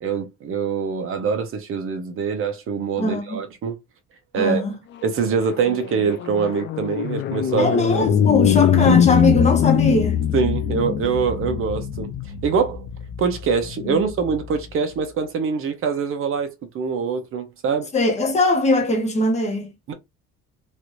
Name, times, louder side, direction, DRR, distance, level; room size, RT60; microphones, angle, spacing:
voice 1, 0.0-3.8 4.3-4.6 5.0-7.8 10.3-12.1 12.4-12.9 13.2-17.9 19.9-20.0, right 6 dB, 40° right, 0.8 m, -24 dB
voice 2, 3.0-3.4 4.3-4.7 7.5-10.2 13.8-14.0 17.9-19.7, left 2 dB, 20° left, 1.0 m, -21 dB
sound 1, 5.1-14.6, left 9 dB, 35° left, 0.4 m, -22 dB
3.1 x 2.6 x 3.0 m
cardioid pair, 150°, 32 cm